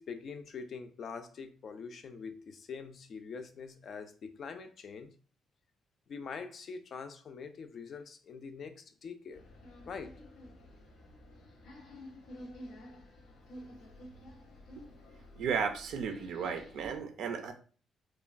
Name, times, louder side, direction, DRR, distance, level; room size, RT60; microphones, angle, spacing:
voice 1, 0.0-5.1 6.1-9.4 9.9-10.2, left 5 dB, 55° left, 0.4 m, -44 dB
sound 1, 9.3-17.0, left 1 dB, 85° left, 0.7 m, -51 dB
voice 2, 15.4-17.5, right 6 dB, 75° right, 0.4 m, -34 dB
2.9 x 2.2 x 2.4 m
cardioid pair, 90°, 0 cm